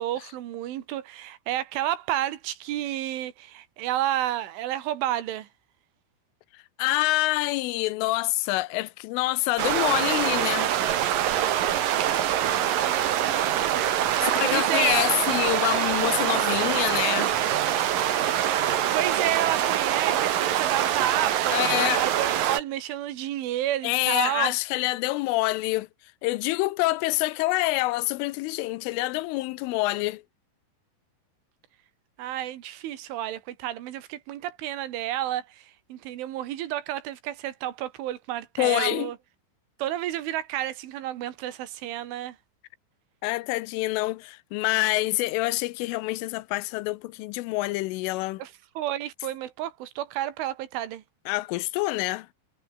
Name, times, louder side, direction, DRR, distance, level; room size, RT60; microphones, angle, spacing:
voice 1, 0.0-5.5 14.1-15.1 18.9-21.6 21.9-24.5 32.2-39.2 39.8-42.4 48.4-51.0, right 13 dB, 75° right, 4.1 m, -31 dB
voice 2, 6.5-10.7 14.2-17.3 21.5-22.0 23.8-25.9 26.2-30.2 38.6-39.1 43.2-48.4 51.3-52.3, left 20 dB, 85° left, 3.3 m, -26 dB
sound 1, 9.6-22.6, right 11 dB, 60° right, 2.7 m, -24 dB
omnidirectional pair, 5.7 m